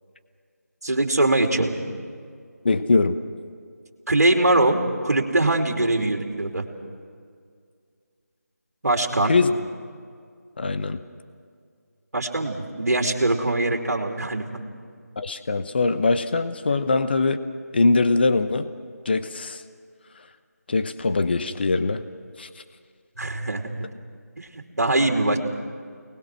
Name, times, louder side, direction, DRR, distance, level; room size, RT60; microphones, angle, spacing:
voice 1, 0.8-1.8 4.1-4.8 5.0-6.6 8.8-9.4 12.1-14.4 23.2-23.7 24.4-24.5 24.8-25.4, right 2 dB, 65° right, 3 dB, 3.1 m, -22 dB
voice 2, 2.6-3.2 9.3-9.5 10.6-11.0 15.2-17.4 17.7-18.7 19.1-19.6 20.7-22.0 22.4-22.5, left 3 dB, 35° left, 11 dB, 0.9 m, -22 dB
28.5 x 20.0 x 6.2 m, 2.1 s
figure-of-eight pair, 165°, 9 cm